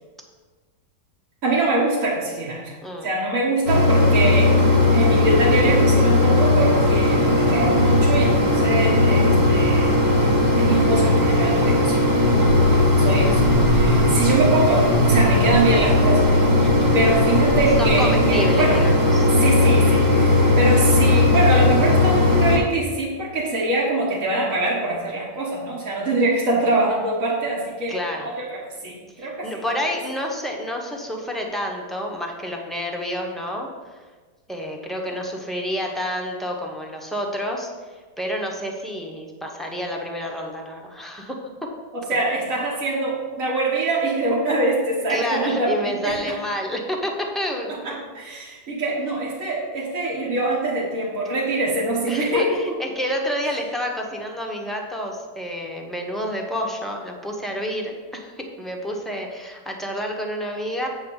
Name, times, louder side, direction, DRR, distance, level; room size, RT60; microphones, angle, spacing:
voice 1, 1.4-4.6 4.9-10.3 10.6-12.1 13.0-13.4 13.7-16.5 16.9-18.8 19.3-29.5 35.1-35.2 41.9-46.4 47.7-52.7, right 2 dB, 50° right, -5 dB, 1.7 m, -24 dB
Mechanisms, 3.7-22.6, left 2 dB, 25° right, 1.3 m, -17 dB
voice 2, 16.6-16.9 17.8-19.3 27.9-28.3 29.2-34.0 34.5-37.7 38.2-41.7 42.1-42.2 45.1-48.0 52.1-60.9, equal, ahead, 0 dB, 0.7 m, -29 dB
8.5 x 4.3 x 7.2 m, 1.4 s
omnidirectional pair, 1.9 m